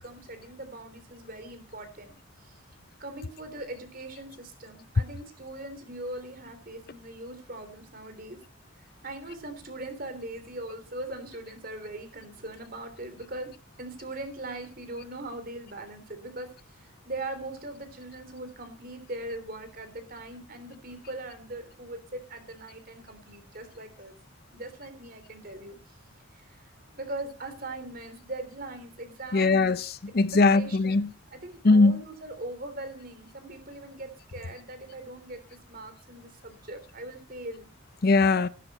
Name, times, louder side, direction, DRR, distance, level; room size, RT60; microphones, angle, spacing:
voice 1, 0.0-2.1 2.4-2.6 3.0-8.4 9.0-13.5 13.8-24.1 24.5-26.0 26.3-29.7 30.3-37.7, right 2 dB, 45° right, 3.4 m, -40 dB
voice 2, 29.3-31.1 31.6-32.0 38.0-38.5, left 3 dB, 45° left, 0.6 m, -21 dB
15.5 x 12.0 x 4.3 m
head